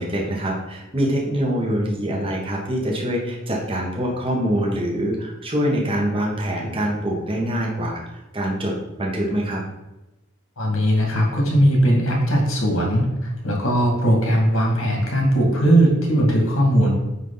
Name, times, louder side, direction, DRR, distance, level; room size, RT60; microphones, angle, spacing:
voice 1, 0.0-9.6, equal, 25° right, -2 dB, 1.4 m, -24 dB
voice 2, 10.6-16.9, right 1 dB, 80° left, -1 dB, 2.4 m, -19 dB
9.2 x 3.7 x 4.0 m, 0.99 s
head